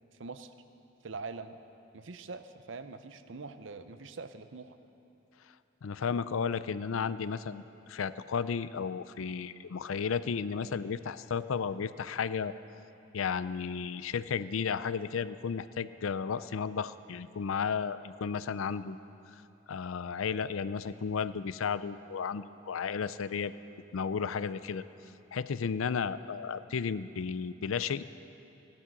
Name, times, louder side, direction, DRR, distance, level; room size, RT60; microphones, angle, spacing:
voice 1, 0.1-0.5 1.0-1.6 1.9-4.8, right 4 dB, 65° right, 10 dB, 0.7 m, -43 dB
voice 2, 5.8-12.5 13.1-19.0 19.7-23.5 23.9-24.8 25.3-28.0, left 6 dB, 85° left, 15 dB, 0.5 m, -33 dB
16.5 x 12.0 x 6.0 m, 2.9 s
head